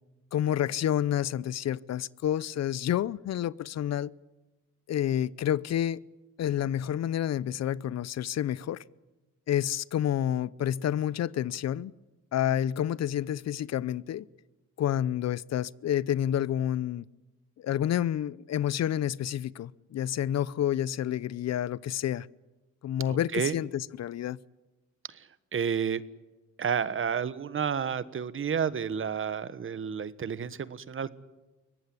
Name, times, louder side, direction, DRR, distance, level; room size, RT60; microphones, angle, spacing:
voice 1, 0.3-4.1 4.9-6.0 6.4-8.8 9.5-11.9 12.3-14.3 14.8-17.1 17.6-22.3 22.8-24.4, left 11 dB, 60° left, 0.7 m, -29 dB
voice 2, 23.1-23.5 25.1-26.0 26.6-31.1, right 7 dB, 45° right, 1.4 m, -31 dB
23.0 x 18.5 x 9.7 m
cardioid pair, 90°, 30 cm